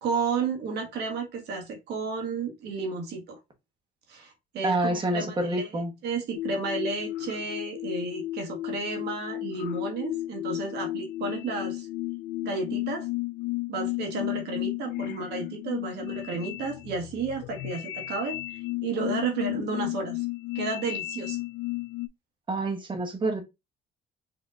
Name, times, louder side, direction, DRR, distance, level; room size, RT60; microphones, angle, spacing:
voice 1, 0.0-3.4 4.1-11.9 12.4-13.1 13.7-20.2 20.5-21.4, right 4 dB, 75° right, 1.6 m, -32 dB
voice 2, 4.6-5.9 22.5-23.4, right 1 dB, 30° right, 1.1 m, -27 dB
sound 1, 6.3-22.1, left 18 dB, 75° left, 0.4 m, -34 dB
5.2 x 2.8 x 2.4 m
cardioid pair, 110°, 17 cm